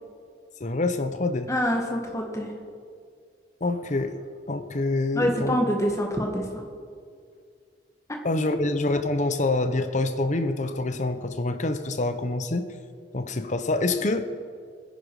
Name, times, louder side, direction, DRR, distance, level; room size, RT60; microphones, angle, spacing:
voice 1, 0.6-1.5 3.6-4.2 4.5-5.6 8.2-12.7 13.1-14.3, left 2 dB, 40° left, 9 dB, 0.8 m, -26 dB
voice 2, 1.5-2.5 5.2-6.6, equal, 15° left, 1 dB, 1.8 m, -26 dB
21.0 x 10.5 x 4.9 m, 2.2 s
head